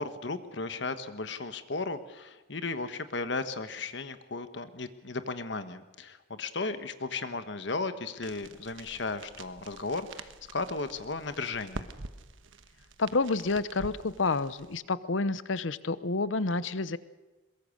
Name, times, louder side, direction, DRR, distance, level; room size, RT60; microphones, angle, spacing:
voice 1, 0.0-11.8, left 3 dB, 70° left, 11 dB, 1.2 m, -35 dB
sound 1, 8.2-14.8, right 3 dB, 90° right, 1.2 m, -47 dB
voice 2, 13.0-17.0, left 3 dB, 85° left, 16 dB, 0.8 m, -29 dB
22.5 x 22.0 x 6.5 m, 1.2 s
head